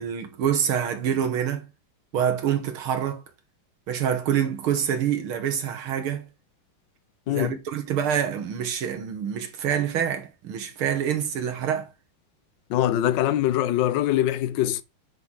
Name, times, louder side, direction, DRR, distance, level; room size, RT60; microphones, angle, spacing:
voice 1, 0.0-1.7 2.1-3.2 3.9-6.3 7.3-11.9, right 8 dB, 85° right, 2.3 m, -26 dB
voice 2, 7.3-7.6 12.7-14.8, left 12 dB, 70° left, 1.4 m, -23 dB
9.2 x 3.2 x 5.6 m
omnidirectional pair, 2.3 m